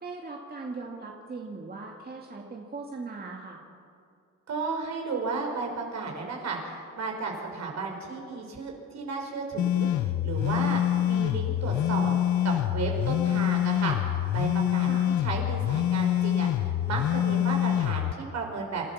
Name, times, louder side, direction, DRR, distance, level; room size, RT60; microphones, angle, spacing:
voice 1, 0.0-3.6 14.8-15.1, right 3 dB, 30° right, -1 dB, 2.2 m, -39 dB
voice 2, 4.5-12.2 12.4-14.9 15.2-18.9, right 4 dB, 60° right, 1 dB, 5.3 m, -33 dB
sound 1, 9.6-18.1, left 11 dB, 65° left, 0.7 m, -26 dB
28.0 x 13.0 x 7.3 m, 2.4 s
cardioid pair, 90°, 30 cm